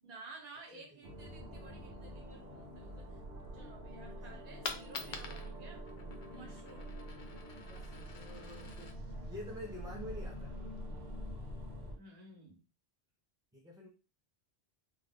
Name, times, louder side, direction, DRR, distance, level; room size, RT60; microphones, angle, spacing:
voice 1, 0.0-3.2 3.5-5.9 6.3-6.9 11.9-12.6, right 3 dB, 45° right, 0 dB, 0.9 m, -54 dB
voice 2, 0.7-1.3 6.5-6.7 7.6-9.0 9.3-10.5 13.5-13.9, left 1 dB, 5° right, -5 dB, 0.4 m, -48 dB
sound 1, 1.0-12.0, equal, 85° right, 1.0 m, -46 dB
Coin (dropping), 4.3-10.3, left 4 dB, 55° left, 0.5 m, -48 dB
2.4 x 2.3 x 3.4 m, 0.31 s
omnidirectional pair, 1.1 m